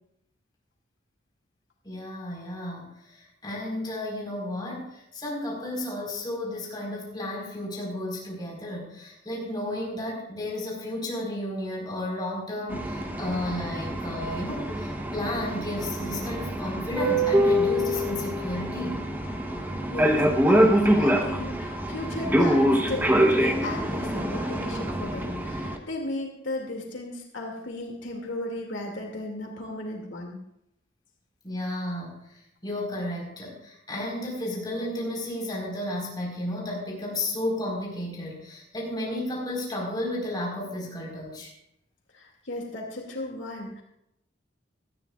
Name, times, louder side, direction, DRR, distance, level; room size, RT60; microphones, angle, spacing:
voice 1, 1.8-2.9 3.2-19.0 31.4-32.2 32.6-41.5, left 1 dB, 25° left, -3 dB, 4.6 m, -33 dB
sound 1, 12.7-25.8, equal, 10° right, 1.0 m, -25 dB
voice 2, 19.6-30.4 42.1-43.8, left 2 dB, 90° left, 0 dB, 2.5 m, -35 dB
18.5 x 13.0 x 2.5 m, 0.80 s
head